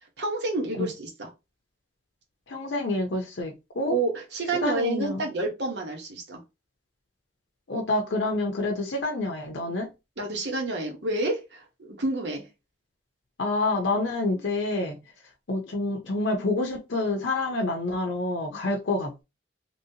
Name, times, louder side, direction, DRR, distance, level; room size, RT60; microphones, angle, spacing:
voice 1, 0.2-1.3 3.9-6.4 10.2-12.5, right 2 dB, 70° right, 1.1 m, -29 dB
voice 2, 2.5-4.0 4.6-5.2 7.7-9.9 13.4-14.9 15.5-19.2, left 2 dB, 90° left, 0.7 m, -27 dB
3.0 x 2.8 x 2.8 m
head